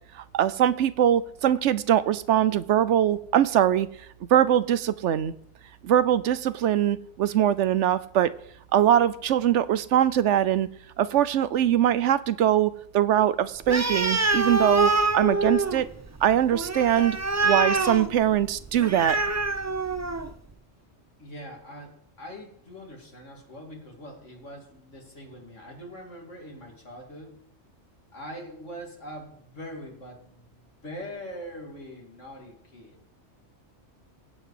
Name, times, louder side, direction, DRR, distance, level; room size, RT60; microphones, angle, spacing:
voice 1, 0.1-3.9 4.3-5.3 5.8-8.3 8.7-10.7 11.0-15.9 16.2-17.2 17.4-19.2, right 10 dB, 80° right, 15 dB, 1.0 m, -22 dB
Animal, 13.6-20.4, right 2 dB, 25° right, 0.4 m, -26 dB
voice 2, 21.2-27.3 28.1-33.0, equal, 90° left, 1 dB, 3.0 m, -42 dB
16.5 x 8.0 x 5.0 m, 0.66 s
omnidirectional pair, 1.2 m